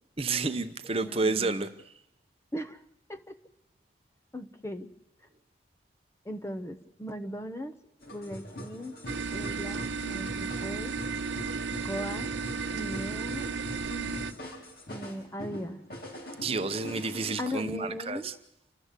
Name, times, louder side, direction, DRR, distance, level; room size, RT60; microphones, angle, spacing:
voice 1, 0.2-1.9 16.4-18.3, right 3 dB, 30° right, 0.8 m, -30 dB
voice 2, 0.9-1.5 2.5-2.8 3.1-3.4 4.3-4.9 6.2-7.7 8.1-8.9 9.3-10.9 11.8-12.3 12.7-13.6 14.9-15.8 17.4-18.3, equal, 15° left, 0.9 m, -38 dB
sound 1, 8.0-17.3, left 1 dB, 50° left, 3.6 m, -43 dB
sound 2, 9.1-14.3, right 5 dB, 70° right, 1.0 m, -34 dB
29.5 x 12.5 x 8.2 m
head